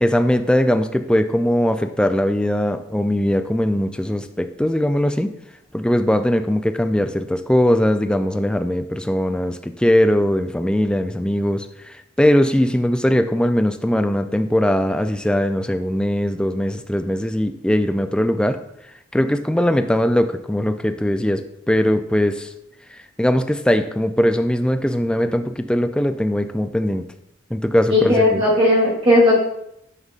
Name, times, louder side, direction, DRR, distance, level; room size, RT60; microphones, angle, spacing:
voice 1, 0.0-5.3 5.7-18.7 19.1-22.5 23.2-27.1 27.5-28.4, equal, 5° left, 8 dB, 0.3 m, -20 dB
voice 2, 27.9-29.3, left 1 dB, 30° right, -9 dB, 2.8 m, -16 dB
9.8 x 5.2 x 2.4 m, 0.78 s
head